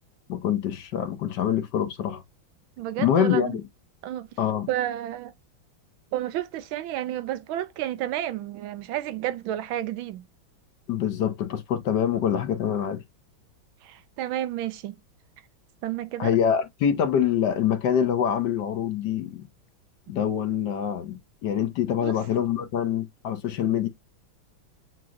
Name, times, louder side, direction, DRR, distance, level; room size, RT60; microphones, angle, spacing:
voice 1, 0.3-2.2 3.0-3.6 4.4-4.7 10.9-13.0 16.2-19.5 20.1-23.9, left 9 dB, 65° left, 1.2 m, -25 dB
voice 2, 2.8-3.6 4.0-4.3 4.7-5.3 6.1-10.2 13.8-15.0 15.8-16.3 22.0-22.1, right 12 dB, 80° right, 1.4 m, -31 dB
7.5 x 2.9 x 2.5 m
omnidirectional pair, 2.2 m